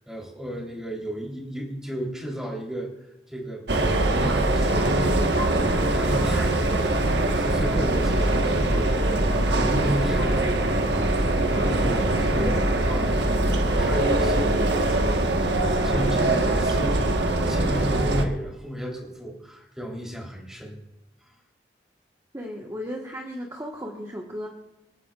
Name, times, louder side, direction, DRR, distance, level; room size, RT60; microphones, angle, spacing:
voice 1, 0.1-2.9 3.3-3.7 4.0-7.0 7.3-20.8, equal, 5° right, -1 dB, 3.5 m, -33 dB
sound 1, 3.7-18.2, right 1 dB, 80° right, 1.3 m, -22 dB
voice 2, 22.3-24.5, equal, 20° right, -1 dB, 1.3 m, -35 dB
26.5 x 9.5 x 2.4 m, 0.98 s
head